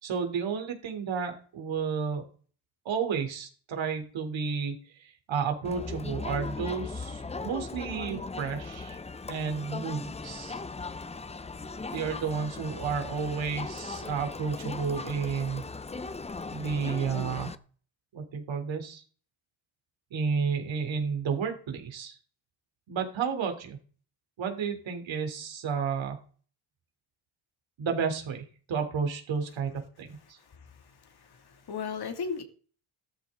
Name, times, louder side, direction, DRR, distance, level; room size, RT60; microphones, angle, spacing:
voice 1, 0.0-2.2 2.8-9.0 9.3-10.6 11.9-15.6 16.5-17.5 18.1-19.0 20.1-22.2 22.9-23.8 24.4-26.2 27.8-30.4, right 6 dB, 65° right, 3.6 m, -32 dB
Crowd, 5.6-17.6, left 3 dB, 15° left, 0.6 m, -38 dB
voice 2, 30.4-32.4, left 6 dB, 50° left, 2.6 m, -37 dB
15.0 x 13.5 x 3.8 m
cardioid pair, 135°, 48 cm